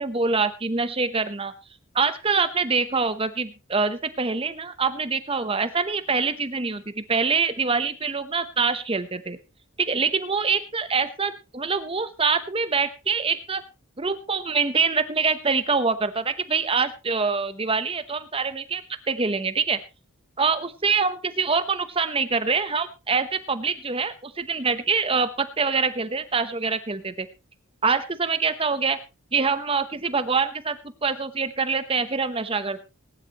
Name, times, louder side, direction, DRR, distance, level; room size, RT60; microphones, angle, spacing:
voice 1, 0.0-1.5 1.9-9.4 9.8-13.6 14.0-18.8 19.1-19.8 20.4-27.3 27.8-29.0 29.3-32.8, right 4 dB, 25° right, 12 dB, 0.9 m, -25 dB
20.0 x 10.5 x 3.0 m, 0.28 s
head